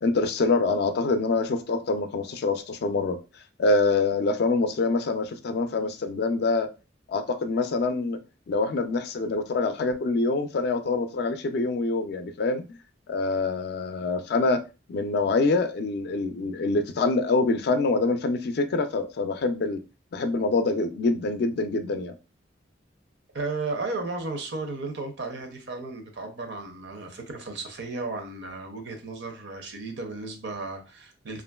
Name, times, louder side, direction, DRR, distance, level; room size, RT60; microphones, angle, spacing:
voice 1, 0.0-3.2 3.6-6.7 7.1-8.2 8.5-12.6 13.1-14.6 14.9-19.8 20.1-22.1, left 3 dB, 60° left, 0.3 m, -25 dB
voice 2, 23.3-31.4, right 3 dB, 65° right, 0.6 m, -34 dB
2.9 x 2.4 x 2.2 m
head